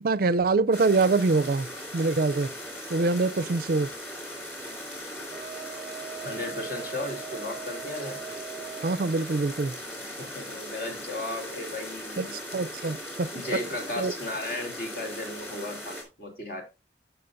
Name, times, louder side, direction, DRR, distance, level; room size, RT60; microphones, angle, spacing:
voice 1, 0.0-1.7 1.9-2.5 2.9-3.9 8.8-9.7 12.2-13.3 14.0-14.1, right 3 dB, 50° right, 0.4 m, -24 dB
sound 1, 0.7-16.0, left 1 dB, 10° left, 3.6 m, -39 dB
Wind instrument woodwind instrument, 5.3-9.2, right 8 dB, 30° left, 1.9 m, -41 dB
voice 2, 6.2-8.2 10.0-12.4 13.3-16.6, left 2 dB, 55° left, 2.9 m, -35 dB
14.5 x 5.9 x 2.6 m
head